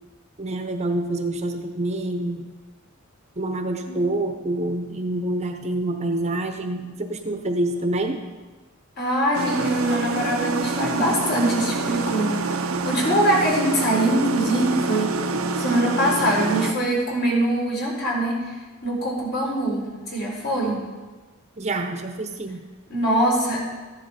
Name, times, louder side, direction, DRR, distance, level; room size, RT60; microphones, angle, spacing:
voice 1, 0.4-2.5 3.4-8.2 21.6-22.7, right 1 dB, 35° right, 5 dB, 0.9 m, -27 dB
voice 2, 9.0-18.5 18.8-20.8 22.9-23.6, right 1 dB, 50° left, -3 dB, 3.8 m, -23 dB
sound 1, 9.3-16.7, right 3 dB, 90° right, 0.8 m, -26 dB
14.5 x 10.0 x 4.3 m, 1.3 s
head